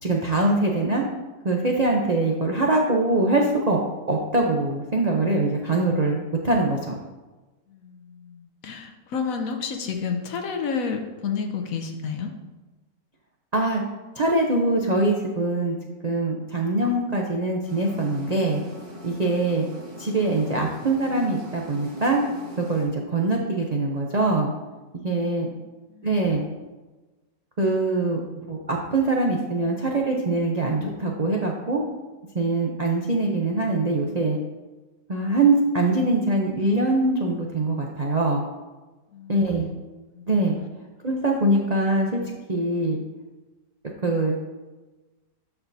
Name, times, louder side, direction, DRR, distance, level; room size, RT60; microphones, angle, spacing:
voice 1, 0.0-1.0 1.4-3.8 4.1-7.0 13.5-13.8 14.2-15.8 16.0-18.6 19.0-19.6 20.0-22.2 22.6-24.5 25.0-25.5 26.0-26.4 27.6-28.2 28.5-31.8 32.3-34.4 35.1-38.4 39.3-39.7 40.3-40.6 41.0-42.2 42.5-43.0 44.0-44.3, right 2 dB, 70° right, 0 dB, 0.3 m, -23 dB
voice 2, 7.7-12.3 25.2-25.5 25.9-26.4 39.1-39.8 40.1-40.3, left 5 dB, 65° left, 5 dB, 1.0 m, -31 dB
sound 1, 17.7-22.8, left 1 dB, 90° right, 2.4 m, -42 dB
13.0 x 4.5 x 2.7 m, 1.2 s
omnidirectional pair, 1.8 m